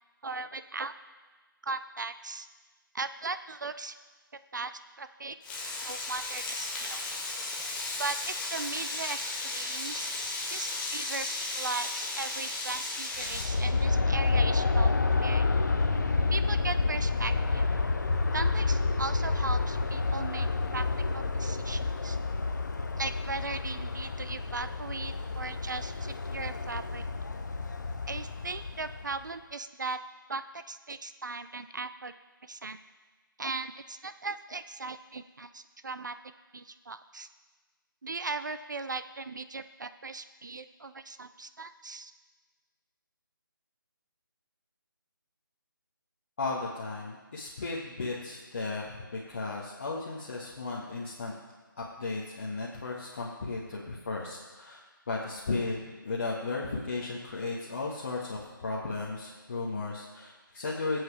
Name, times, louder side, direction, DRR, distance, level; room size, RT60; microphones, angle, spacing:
voice 1, 0.2-0.9 1.6-2.5 2.9-3.9 4.5-4.7 5.0-5.4 5.8-7.0 8.0-10.1 10.5-11.3 11.5-14.9 15.2-15.4 16.3-17.7 18.3-20.5 20.7-20.8 21.1-22.2 23.0-27.0 28.1-30.0 30.3-32.1 32.4-32.8 33.4-36.1 36.5-37.3 38.0-42.1, right 3 dB, 55° right, 11 dB, 0.5 m, -38 dB
Frying (food), 5.4-13.4, left 2 dB, 10° left, 0.9 m, -35 dB
Aircraft, 13.2-29.2, left 3 dB, 55° left, 0.9 m, -29 dB
voice 2, 46.4-51.3 51.8-54.8 55.1-61.0, left 3 dB, 35° left, -6 dB, 1.6 m, -35 dB
21.0 x 8.1 x 3.4 m, 1.3 s
figure-of-eight pair, 155°, 12 cm